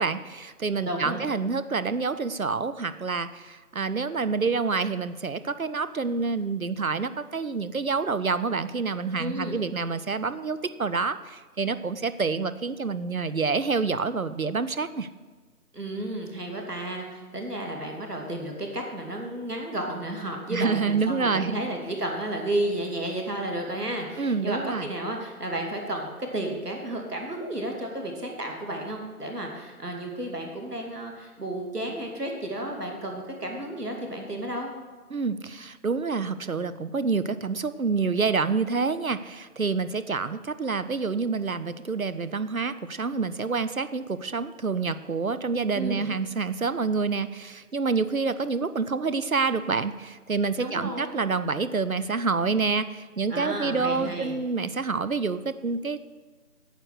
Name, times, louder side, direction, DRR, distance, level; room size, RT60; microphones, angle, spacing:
voice 1, 0.0-15.1 20.5-21.5 24.2-24.9 35.1-56.0, right 4 dB, 65° right, 13 dB, 0.6 m, -27 dB
voice 2, 0.8-1.2 9.2-9.6 15.7-34.7 45.7-46.1 50.6-51.2 53.3-54.4, right 1 dB, 85° right, 1 dB, 2.8 m, -32 dB
9.1 x 8.2 x 6.5 m, 1.4 s
figure-of-eight pair, 180°, 46 cm